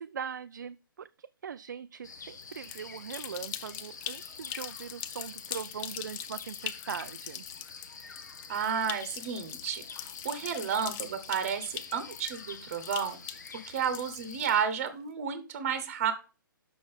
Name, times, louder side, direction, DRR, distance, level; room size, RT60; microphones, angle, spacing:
voice 1, 0.0-7.4, right 7 dB, 55° right, 0.4 m, -41 dB
sound 1, 2.0-14.7, left 5 dB, 55° left, 1.0 m, -47 dB
sound 2, 2.4-14.9, left 11 dB, 15° left, 0.4 m, -42 dB
voice 2, 8.5-13.2 13.7-16.1, right 7 dB, 35° right, 1.0 m, -32 dB
6.9 x 5.9 x 5.1 m
figure-of-eight pair, 130°, 12 cm